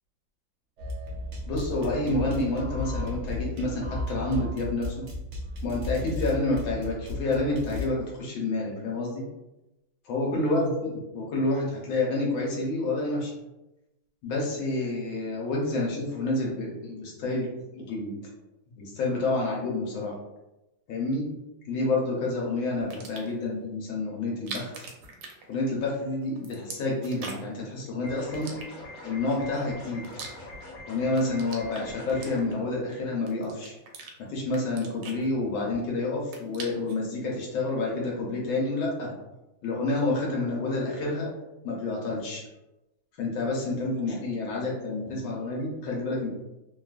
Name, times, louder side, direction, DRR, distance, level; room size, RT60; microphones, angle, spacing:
sound 1, 0.8-7.8, left 1 dB, 75° right, 0.6 m, -34 dB
voice 1, 1.5-5.1 5.6-9.2 10.1-13.3 14.2-18.1 18.8-20.1 20.9-21.3 21.7-24.7 25.5-28.5 29.0-30.0 30.9-33.7 34.2-39.1 39.6-41.3 41.6-42.4 43.2-46.3, left 2 dB, 85° left, -3 dB, 1.5 m, -29 dB
sound 2, 22.8-23.4 24.3-26.0 26.2-27.6 28.3-29.1 29.7-30.8 31.1-32.8 33.3-34.1 34.5-35.8 36.1-37.0, right 4 dB, 90° right, 1.4 m, -42 dB
sound 3, 28.0-32.4, left 2 dB, 65° left, 0.9 m, -43 dB
3.3 x 2.3 x 2.3 m, 0.96 s
omnidirectional pair, 2.1 m